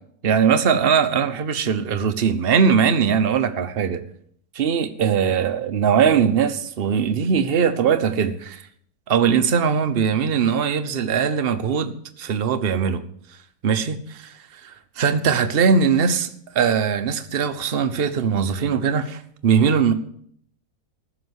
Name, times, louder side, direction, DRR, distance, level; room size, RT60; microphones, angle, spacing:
voice 1, 0.2-4.0 4.5-8.7 9.1-13.0 13.6-16.3 16.5-19.9, right 6 dB, 45° right, 10 dB, 0.8 m, -20 dB
14.5 x 6.3 x 8.1 m, 0.66 s
omnidirectional pair, 1.8 m